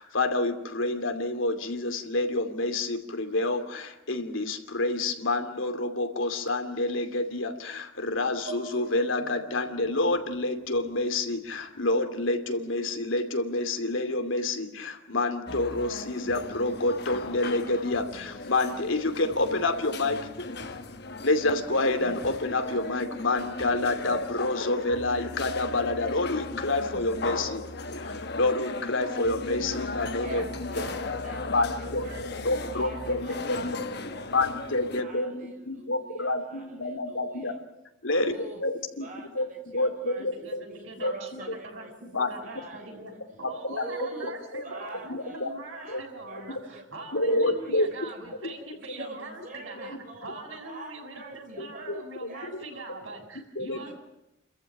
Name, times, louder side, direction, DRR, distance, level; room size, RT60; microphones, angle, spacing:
voice 1, 0.0-20.3 20.7-20.8 21.2-27.6 27.9-30.8 31.5-32.1 32.4-33.7 34.3-37.5 38.0-38.3 38.6-39.1 39.3-39.5 39.7-40.6 41.0-41.4 42.1-42.3 43.4-43.5 43.8-43.9 44.5-44.6 45.1-45.5 45.9-46.0 47.1-47.9 51.6-51.7 53.6-53.8, left 2 dB, 85° left, 7 dB, 2.7 m, -28 dB
sound 1, 8.5-12.1, right 3 dB, 70° right, 5.6 m, -46 dB
sound 2, 15.5-35.0, left 3 dB, 55° left, 1.3 m, -37 dB
voice 2, 30.2-32.4 32.7-34.4 35.0-37.6 38.1-38.6 39.0-40.3 40.7-41.9 42.4-43.0 43.7-44.3 44.6-48.0 48.3-48.4 48.8-49.2 49.4-53.2 53.7-53.9, right 2 dB, 40° right, 2 dB, 5.8 m, -45 dB
voice 3, 40.2-43.1 43.4-53.9, right 2 dB, 90° right, 1 dB, 7.2 m, -42 dB
29.5 x 14.5 x 9.0 m, 0.91 s
head